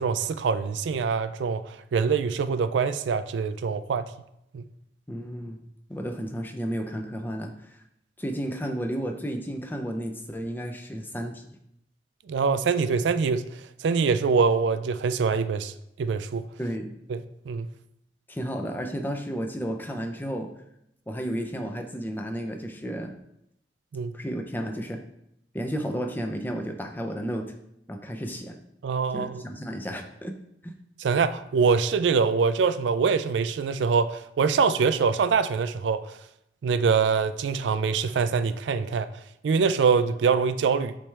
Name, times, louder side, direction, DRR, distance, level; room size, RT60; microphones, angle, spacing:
voice 1, 0.0-4.1 4.5-4.6 12.3-15.7 16.0-16.5 17.1-17.7 23.9-24.1 28.8-29.4 31.0-36.1 36.6-39.1 39.4-41.0, right 5 dB, 85° right, 0.4 m, -24 dB
voice 2, 5.1-5.6 5.9-7.8 8.2-11.5 16.6-16.9 18.3-20.5 21.1-23.1 24.1-25.0 25.5-27.5 27.9-28.6 29.1-30.3 30.6-30.7, equal, 10° left, 0.5 m, -32 dB
8.7 x 3.3 x 3.3 m
head